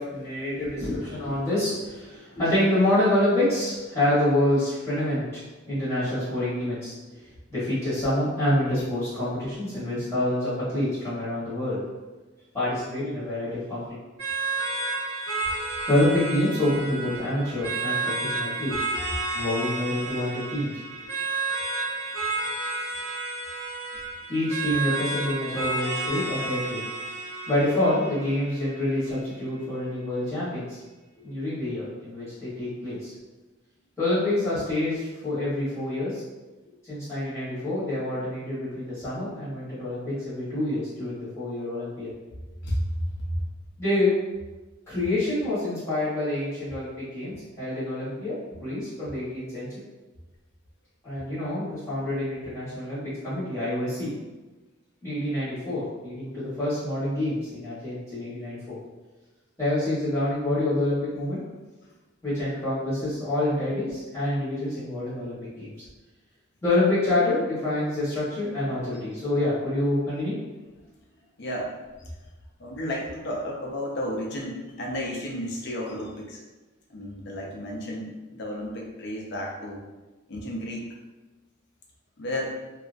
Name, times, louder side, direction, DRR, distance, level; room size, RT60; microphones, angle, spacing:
voice 1, 0.0-5.4 5.7-6.9 7.5-11.8 12.5-14.0 15.9-18.7 19.3-20.7 24.3-26.8 27.5-30.8 31.2-33.1 34.0-36.2 36.9-42.1 43.8-44.1 44.9-48.3 48.6-49.7 51.0-54.1 55.0-58.8 59.6-61.4 62.2-65.7 66.6-70.3, left 1 dB, 15° left, -13 dB, 1.1 m, -27 dB
sound 1, 14.2-29.2, right 3 dB, 70° right, 1.2 m, -31 dB
voice 2, 42.6-43.4 62.2-62.4 71.4-71.7 72.0-72.1 72.6-76.4 76.9-79.8 80.3-81.0 82.2-82.5, equal, 55° left, -2 dB, 0.5 m, -32 dB
2.7 x 2.4 x 2.5 m, 1.2 s
head